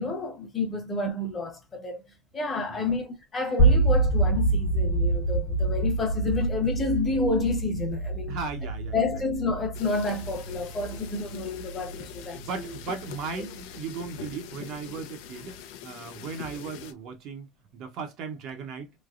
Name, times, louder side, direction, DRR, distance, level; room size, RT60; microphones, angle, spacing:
voice 1, 0.0-2.0 2.3-8.4 8.9-12.4, left 3 dB, 20° left, 0.9 m, -29 dB
voice 2, 2.6-2.9 8.3-9.2 12.0-12.1 12.4-17.5 17.7-18.9, right 5 dB, 50° right, 0.8 m, -37 dB
sound 1, 3.6-13.6, right 2 dB, 60° left, 0.9 m, -26 dB
sound 2, 9.7-16.9, left 10 dB, 90° left, 0.6 m, -43 dB
3.2 x 2.9 x 2.4 m
cardioid pair, 180°, 0 cm